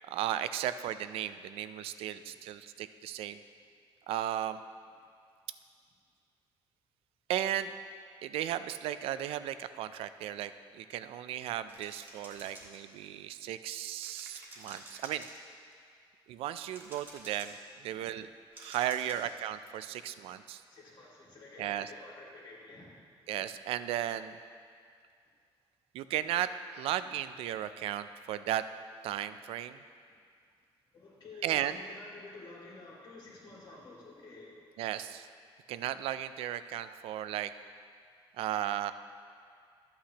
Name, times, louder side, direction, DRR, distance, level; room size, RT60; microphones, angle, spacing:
voice 1, 0.1-3.4 4.1-4.6 7.3-7.7 8.2-15.3 16.3-17.6 17.8-18.3 18.6-20.6 21.6-21.9 23.3-24.4 25.9-28.6 29.0-29.8 31.4-31.7 34.8-35.3 35.7-37.5 38.4-38.9, right 11 dB, 85° right, 12 dB, 0.4 m, -35 dB
sound 1, 11.7-13.2 14.0-15.7 16.7-17.7 18.6-19.4, right 2 dB, 20° right, 1.4 m, -50 dB
voice 2, 20.7-23.2 30.0-30.1 30.9-34.6, left 3 dB, 50° left, -5 dB, 2.3 m, -51 dB
13.0 x 8.5 x 2.9 m, 2.2 s
cardioid pair, 165°, 10 cm